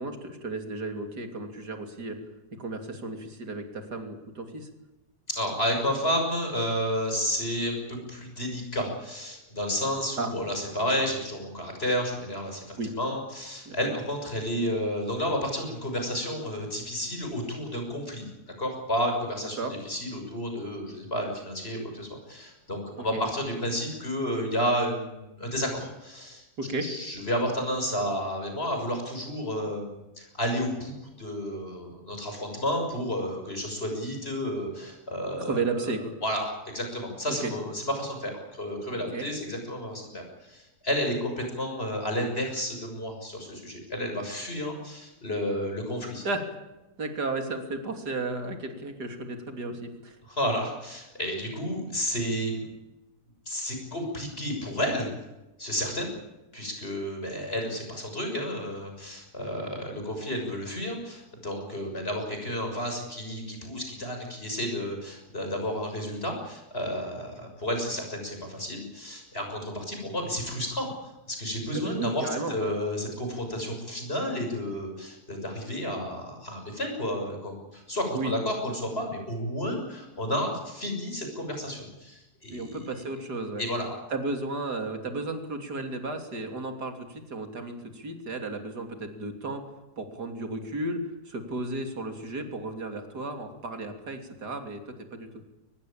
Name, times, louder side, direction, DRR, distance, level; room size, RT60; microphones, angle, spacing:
voice 1, 0.0-2.2 2.5-4.7 10.2-10.3 12.8-12.9 13.7-14.0 19.6-19.7 23.0-23.2 26.6-26.9 35.4-36.1 37.3-37.5 38.9-39.3 46.2-46.4 47.0-50.2 71.7-72.6 78.1-78.3 82.5-83.7 84.1-89.6 90.0-95.4, right 2 dB, 90° right, 5 dB, 3.6 m, -34 dB
voice 2, 5.3-18.3 18.6-26.5 26.8-35.6 36.2-46.2 50.3-52.7 53.5-55.1 55.6-56.1 56.5-82.9 83.6-83.9, equal, 35° left, 3 dB, 6.9 m, -31 dB
23.5 x 19.5 x 8.8 m, 1.0 s
omnidirectional pair, 1.7 m